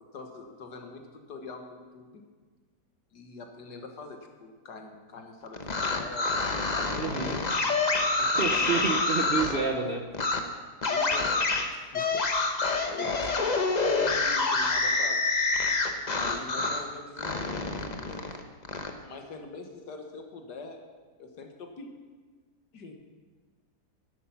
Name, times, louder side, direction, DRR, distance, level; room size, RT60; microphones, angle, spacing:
voice 1, 0.1-2.2 3.1-7.4 8.2-9.0 9.5-9.8 10.9-12.4 12.8-15.2 16.1-18.3 19.0-20.8 21.2-21.9 22.7-22.9, left 4 dB, 75° left, 4 dB, 1.9 m, -43 dB
sound 1, 5.5-9.6 10.1-10.4 10.8-16.9 17.2-18.9, left 3 dB, 35° left, 0.8 m, -27 dB
voice 2, 7.0-7.4 8.4-10.0, right 5 dB, 45° right, 3 dB, 0.9 m, -29 dB
12.5 x 10.0 x 5.8 m, 1.4 s
omnidirectional pair, 1.8 m